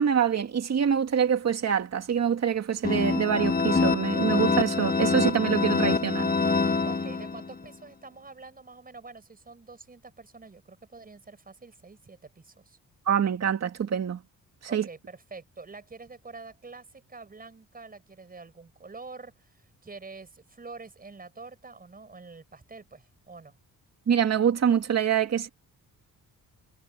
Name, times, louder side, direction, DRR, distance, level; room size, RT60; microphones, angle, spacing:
voice 1, 0.0-6.3 13.1-14.2 14.7-14.9 24.1-25.5, right 8 dB, 50° right, 2.5 m, -25 dB
sound 1, 2.8-7.6, left 4 dB, 25° left, 1.7 m, -25 dB
voice 2, 6.8-12.8 14.7-23.6, right 4 dB, 25° right, 5.6 m, -46 dB
cardioid pair, 115°, 34 cm